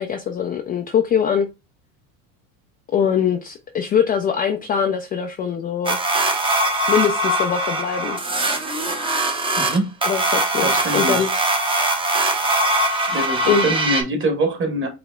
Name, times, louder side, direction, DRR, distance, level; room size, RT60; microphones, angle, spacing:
voice 1, 0.0-1.5 2.9-6.0 6.9-8.2 10.0-11.3 13.5-13.7, left 7 dB, 20° left, 0.3 m, -22 dB
sound 1, 5.9-14.0, right 1 dB, 15° right, 0.7 m, -21 dB
voice 2, 9.6-9.9 10.6-11.2 13.1-14.9, right 2 dB, 30° right, 1.2 m, -23 dB
5.1 x 2.8 x 2.2 m
supercardioid pair, 105°, 41 cm